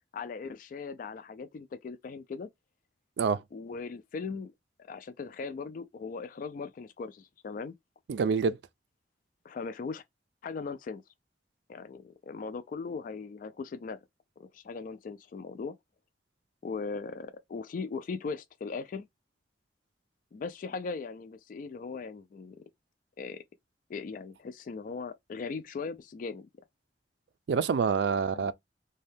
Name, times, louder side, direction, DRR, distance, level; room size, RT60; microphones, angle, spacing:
voice 1, 0.1-2.5 3.5-4.5 4.8-7.7 9.4-10.0 10.4-11.0 11.7-14.0 14.4-15.8 16.6-19.1 20.3-22.6 23.2-23.4 23.9-26.5 28.1-28.5, left 4 dB, 50° left, 0.3 m, -39 dB
voice 2, 8.1-8.6 27.5-28.5, right 5 dB, 70° right, 0.4 m, -26 dB
2.6 x 2.2 x 3.3 m
head